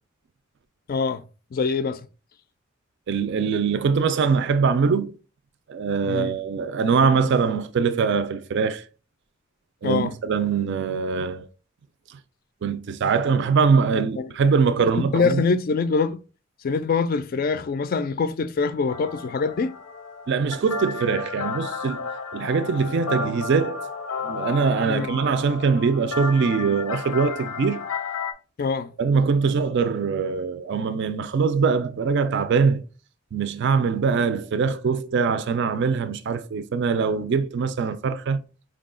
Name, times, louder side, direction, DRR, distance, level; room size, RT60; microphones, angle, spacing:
voice 1, 0.9-1.2 1.5-2.1 6.1-6.4 9.8-10.2 14.2-14.3 15.1-16.2 16.6-19.7 24.9-25.1 28.6-28.9, left 4 dB, 45° left, 0.3 m, -24 dB
voice 2, 3.1-5.1 5.7-8.8 9.8-11.5 12.1-12.2 12.6-15.4 20.3-22.0 22.3-23.8 24.2-27.8 29.0-32.8 33.3-38.4, right 5 dB, 60° right, 0.4 m, -22 dB
sound 1, 18.9-28.3, left 4 dB, 85° left, 0.6 m, -32 dB
4.7 x 2.3 x 3.7 m
head